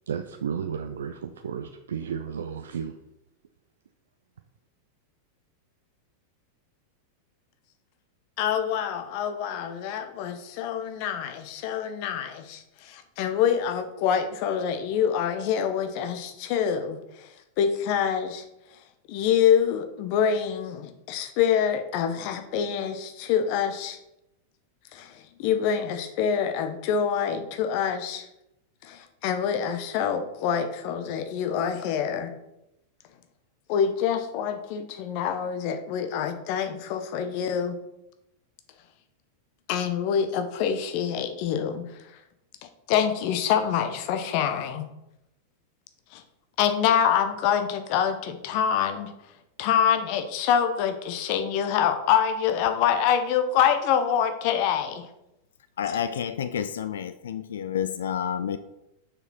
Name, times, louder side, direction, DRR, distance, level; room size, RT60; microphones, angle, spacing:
voice 1, 0.1-2.9, right 7 dB, 65° right, 0.4 m, -33 dB
voice 2, 8.4-17.0 17.6-18.4 19.1-24.0 24.9-25.1 25.4-28.3 28.8-32.3 33.7-37.8 39.7-41.8 42.9-44.9 46.1-46.2 46.6-49.1 49.6-55.0, left 8 dB, 45° left, 0.9 m, -26 dB
voice 3, 55.8-58.6, left 8 dB, 65° left, 0.4 m, -29 dB
6.9 x 6.1 x 4.3 m
figure-of-eight pair, 90°, 0 cm